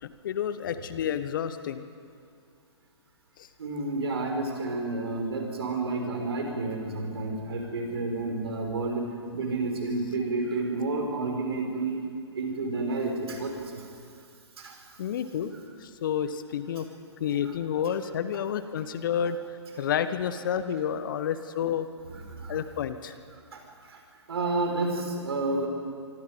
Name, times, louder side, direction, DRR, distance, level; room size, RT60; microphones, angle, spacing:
voice 1, 0.0-1.8 3.4-3.5 15.0-15.5 15.8-16.9 17.2-21.9 22.5-23.1, left 8 dB, 45° left, 12 dB, 1.2 m, -30 dB
voice 2, 3.6-12.0 12.3-13.8 14.6-14.7 17.4-17.5 22.1-22.6 23.5-23.6 23.9-24.0 24.3-25.7, right 2 dB, 60° right, 2 dB, 6.0 m, -30 dB
25.5 x 25.0 x 5.4 m, 2.3 s
figure-of-eight pair, 120°, 15 cm